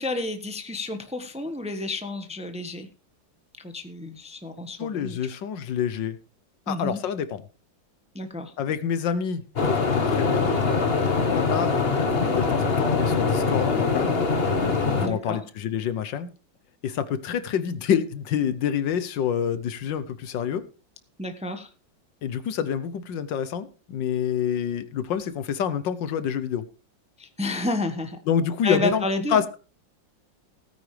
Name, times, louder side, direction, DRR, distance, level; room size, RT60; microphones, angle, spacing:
voice 1, 0.0-2.9 3.6-5.2 6.7-7.0 8.1-8.5 15.0-15.4 21.2-21.7 27.2-28.2 28.6-29.4, left 2 dB, 5° right, 0.9 m, -30 dB
voice 2, 4.8-6.2 6.7-7.4 8.6-9.4 9.7-10.5 11.3-14.1 14.9-16.3 16.8-20.6 22.2-26.6 28.3-29.0 29.3-29.6, left 8 dB, 70° left, 1.5 m, -27 dB
sound 1, 9.5-15.1, left 4 dB, 35° left, 1.5 m, -23 dB
17.0 x 9.5 x 3.3 m
omnidirectional pair, 2.1 m